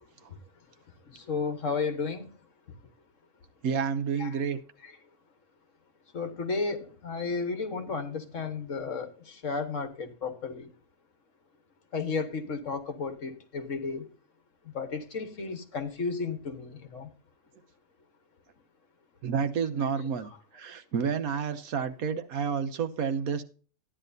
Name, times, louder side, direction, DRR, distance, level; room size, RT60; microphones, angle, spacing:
voice 1, 1.1-2.3 4.2-4.4 4.8-5.0 6.1-10.7 11.9-14.1 14.6-17.1 20.2-20.4, left 4 dB, 65° left, 1.7 m, -33 dB
voice 2, 3.6-4.6 19.2-23.4, right 6 dB, 90° right, 1.4 m, -30 dB
13.5 x 10.0 x 2.7 m
omnidirectional pair, 1.5 m